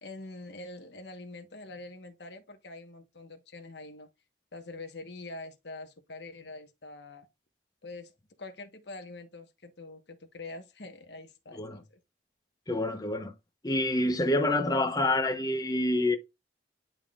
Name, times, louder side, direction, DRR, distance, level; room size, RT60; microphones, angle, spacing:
voice 1, 0.0-4.1 4.5-7.3 7.8-12.0, left 2 dB, 65° left, 1.2 m, -45 dB
voice 2, 12.7-13.3 13.6-16.2, left 1 dB, 20° left, 0.9 m, -27 dB
10.5 x 3.8 x 2.4 m
head